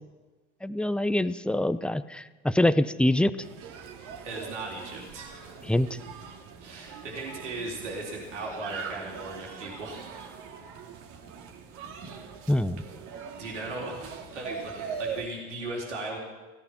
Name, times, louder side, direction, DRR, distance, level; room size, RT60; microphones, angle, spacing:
voice 1, 0.6-3.3 5.6-6.0 12.5-12.8, left 1 dB, 5° left, 14 dB, 0.7 m, -25 dB
sound 1, 3.4-15.3, right 6 dB, 60° right, 2.4 m, -42 dB
voice 2, 4.0-5.5 6.6-10.3 13.4-16.2, right 2 dB, 85° right, -2 dB, 3.8 m, -37 dB
17.5 x 13.0 x 6.0 m, 1.2 s
hypercardioid pair, 70°, 35 cm